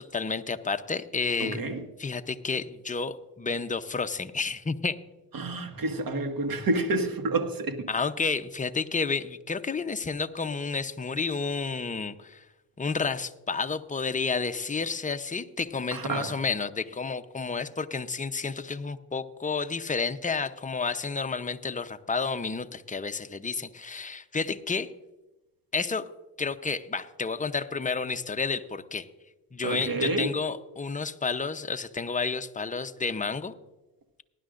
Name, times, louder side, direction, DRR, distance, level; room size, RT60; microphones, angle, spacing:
voice 1, 0.0-1.6 2.0-5.0 7.9-12.4 12.8-24.9 25.7-26.1 26.4-29.1 29.5-33.5, left 4 dB, 15° left, 0.8 m, -31 dB
voice 2, 1.4-1.9 5.3-7.9 15.9-16.4 29.6-30.3, right 2 dB, 50° right, 1.9 m, -29 dB
19.0 x 11.0 x 2.6 m
supercardioid pair, 65°, 45 cm